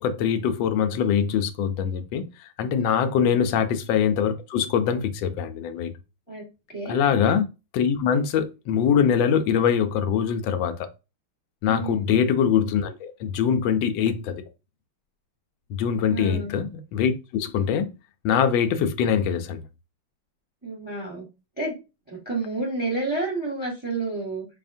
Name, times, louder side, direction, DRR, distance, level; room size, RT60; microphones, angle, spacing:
voice 1, 0.0-5.9 6.9-7.4 7.7-10.9 11.6-14.4 15.7-17.9 18.2-19.6, left 7 dB, 80° left, 1.3 m, -23 dB
voice 2, 3.1-3.4 6.3-6.4 6.7-7.0 11.7-12.0 16.1-16.5 20.6-21.3 21.6-21.7 22.1-24.4, right 3 dB, 5° right, 1.3 m, -30 dB
4.9 x 2.7 x 2.6 m
omnidirectional pair, 2.1 m